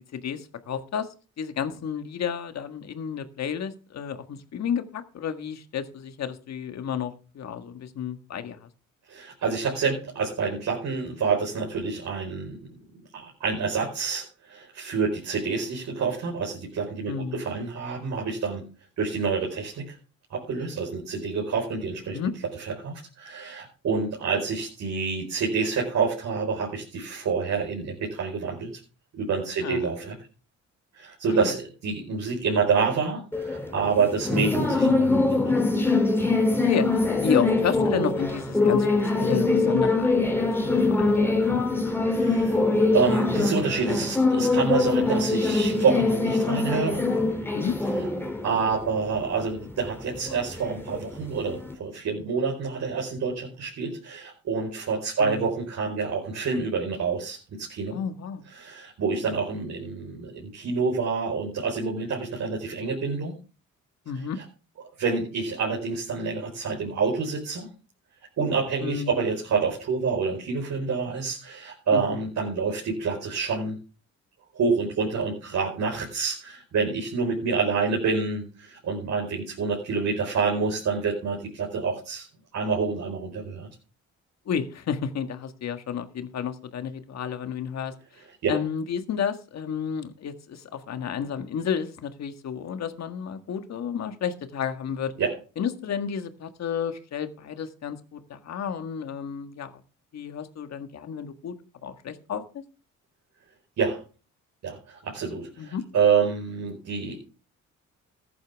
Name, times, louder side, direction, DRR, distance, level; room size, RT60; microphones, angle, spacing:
voice 1, 0.1-1.1 1.4-8.7 17.1-17.4 22.1-22.3 29.6-29.9 31.3-31.5 36.2-41.7 47.5-47.7 55.2-55.5 57.9-58.4 64.1-64.4 68.8-69.3 71.9-72.0 84.5-87.9 88.5-95.1 95.6-99.8 100.1-101.6 101.8-102.6 105.6-105.8, left 7 dB, 60° left, 8 dB, 1.7 m, -31 dB
voice 2, 9.1-12.6 13.1-18.6 19.0-19.9 20.3-22.2 22.6-28.7 29.1-30.2 30.9-35.5 42.1-47.1 48.4-58.0 58.5-63.3 65.0-67.7 68.4-73.7 74.5-82.3 82.5-83.7 88.4-88.6 95.2-95.3 103.8-104.0 104.6-107.2, right 5 dB, 65° right, -1 dB, 5.0 m, -27 dB
sound 1, 33.3-51.7, left 3 dB, 5° left, 3.1 m, -24 dB
14.5 x 11.0 x 3.5 m, 0.35 s
cardioid pair, 90°, 30 cm